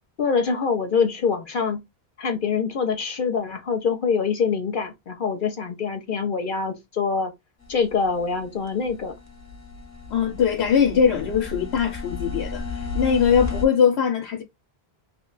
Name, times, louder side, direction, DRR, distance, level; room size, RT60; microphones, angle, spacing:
voice 1, 0.2-1.8 2.2-7.3 7.7-9.1, left 5 dB, 60° left, 0.8 m, -24 dB
sound 1, 7.6-13.6, left 3 dB, 20° left, 0.5 m, -34 dB
voice 2, 10.1-14.4, left 7 dB, 85° left, 0.9 m, -21 dB
3.1 x 2.2 x 3.7 m
omnidirectional pair, 1.1 m